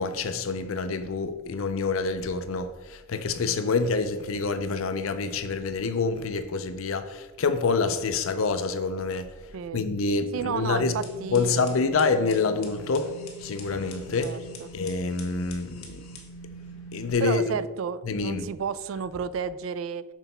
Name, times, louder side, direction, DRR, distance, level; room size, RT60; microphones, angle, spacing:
voice 1, 0.0-9.3 9.7-11.0 11.3-13.2 13.4-14.4 14.7-16.0 16.9-17.6 18.0-18.5, left 4 dB, 70° left, 0.5 m, -27 dB
voice 2, 9.5-9.8 10.3-11.8 14.2-14.7 17.2-20.1, right 6 dB, 65° right, 0.3 m, -32 dB
sound 1, 10.8-17.1, right 1 dB, 85° left, 1.2 m, -43 dB
6.1 x 4.0 x 5.4 m
head